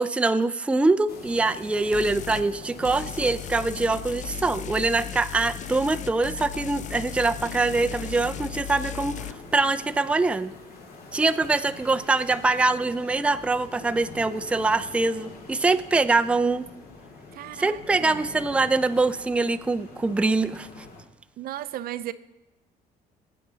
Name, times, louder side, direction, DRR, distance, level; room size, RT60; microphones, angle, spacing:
voice 1, 0.0-10.5 11.1-16.6 17.6-20.9, right 3 dB, 5° right, 9 dB, 0.4 m, -24 dB
sound 1, 1.1-21.0, left 3 dB, 65° left, 2.2 m, -45 dB
sound 2, 1.9-2.5 2.8-9.3, left 10 dB, 45° left, 0.5 m, -36 dB
voice 2, 17.3-18.2 21.4-22.1, right 13 dB, 60° right, 14 dB, 0.5 m, -35 dB
18.0 x 8.5 x 4.0 m, 0.99 s
cardioid pair, 110°, 17 cm